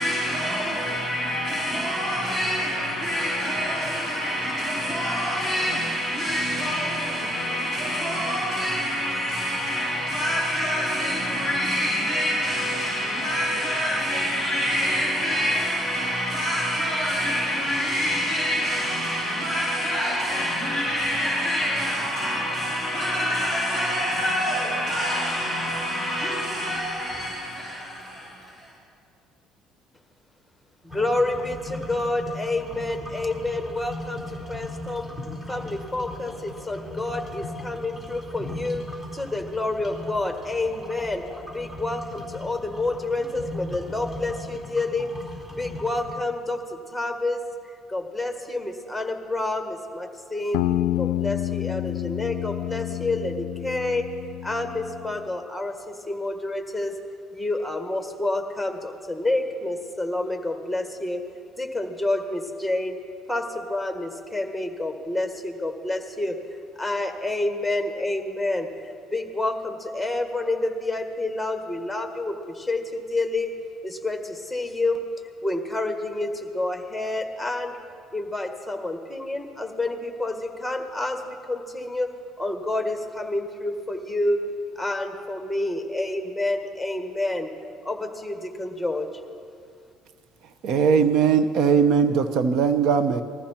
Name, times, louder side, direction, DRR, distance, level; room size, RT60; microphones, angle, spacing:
voice 1, 0.0-28.7, equal, 40° right, 4.6 m, -26 dB
voice 2, 30.8-35.1 35.5-38.8 39.1-41.2 41.5-45.1 45.5-47.4 47.9-50.6 51.0-54.1 54.4-57.0 57.3-61.2 61.6-63.0 63.3-66.4 66.8-68.7 69.1-73.5 73.8-75.0 75.4-77.8 78.1-84.4 84.8-87.5 87.8-89.1, left 2 dB, ahead, 1.7 m, -28 dB
sound 1, 30.9-46.1, left 1 dB, 20° right, 4.2 m, -38 dB
sound 2, 50.5-55.2, left 14 dB, 85° left, 0.3 m, -29 dB
voice 3, 90.6-93.2, right 6 dB, 65° right, 0.9 m, -20 dB
20.5 x 14.5 x 4.4 m
supercardioid pair, 85°, 0 cm